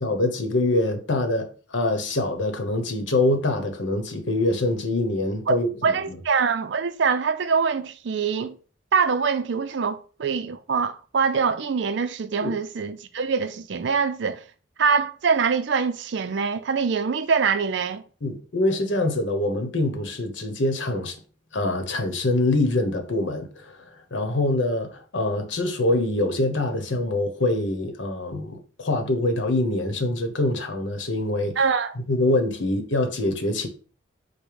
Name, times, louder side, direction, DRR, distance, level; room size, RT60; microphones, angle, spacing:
voice 1, 0.0-6.2 12.4-12.5 18.2-21.1 21.5-23.8 24.1-31.6 32.1-33.7, left 2 dB, 70° left, 0.9 m, -24 dB
voice 2, 5.8-8.6 8.9-14.4 14.8-18.0 31.6-32.0, right 5 dB, 65° right, 0.4 m, -24 dB
5.1 x 2.1 x 4.7 m
head